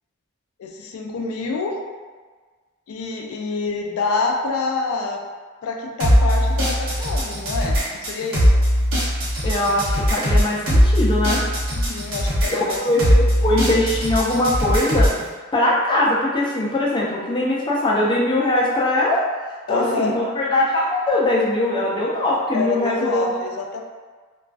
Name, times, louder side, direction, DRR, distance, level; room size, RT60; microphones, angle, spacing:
voice 1, 0.6-1.8 2.9-5.2 5.6-8.7 11.7-12.8 13.2-13.3 19.7-20.2 22.5-23.8, left 3 dB, 85° left, 2 dB, 0.4 m, -27 dB
sound 1, 6.0-15.2, equal, 85° right, 0.7 m, -19 dB
voice 2, 9.4-11.4 12.5-15.1 15.5-19.2 19.7-23.3, left 1 dB, 20° left, -5 dB, 0.4 m, -21 dB
2.3 x 2.3 x 2.3 m, 1.5 s
head